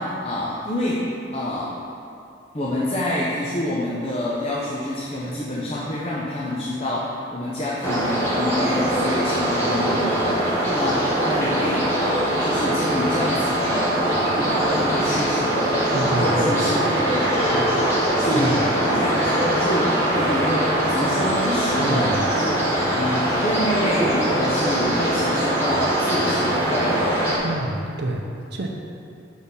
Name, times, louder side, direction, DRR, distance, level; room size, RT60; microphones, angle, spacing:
voice 1, 0.0-1.8 2.5-22.6 22.9-27.1, left 1 dB, 30° left, -6 dB, 0.7 m, -27 dB
sound 1, 7.8-27.4, right 1 dB, 15° left, 1.2 m, -22 dB
voice 2, 15.9-16.6 18.3-18.6 21.8-22.3 27.4-28.7, right 1 dB, 60° right, 1 dB, 0.6 m, -27 dB
6.3 x 4.2 x 5.4 m, 2.6 s
head